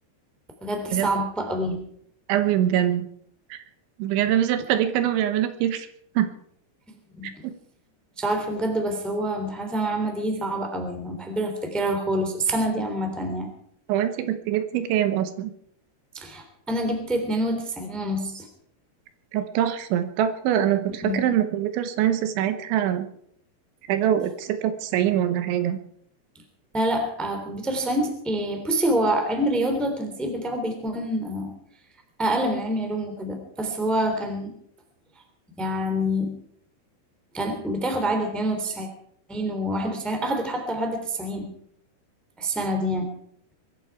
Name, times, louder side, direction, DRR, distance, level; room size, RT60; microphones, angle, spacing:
voice 1, 0.6-1.8 7.1-7.3 8.2-13.5 16.1-18.5 21.0-21.2 26.7-31.5 32.2-34.5 35.6-36.4 37.3-38.9 39.3-41.5 42.4-43.1, right 1 dB, ahead, 4 dB, 1.9 m, -26 dB
voice 2, 2.3-3.1 3.5-3.6 4.0-5.9 6.2-6.3 7.4-7.5 13.9-15.5 19.3-23.1 23.9-25.8, right 11 dB, 80° right, 10 dB, 3.4 m, -24 dB
23.0 x 13.0 x 4.7 m, 0.66 s
omnidirectional pair, 5.4 m